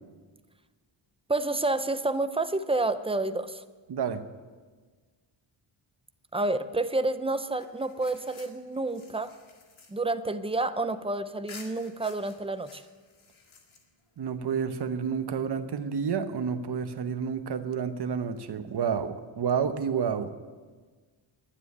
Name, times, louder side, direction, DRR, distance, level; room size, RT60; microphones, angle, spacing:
voice 1, 1.3-3.6 6.3-9.3 9.9-12.8, right 2 dB, 15° right, 11 dB, 0.4 m, -29 dB
voice 2, 3.9-4.2 14.2-20.3, right 6 dB, 55° right, 9 dB, 1.0 m, -30 dB
sound 1, 7.6-11.0 11.5-14.2, left 4 dB, 75° left, 2.1 m, -52 dB
11.5 x 9.7 x 9.7 m, 1.4 s
wide cardioid pair, 180°, 48 cm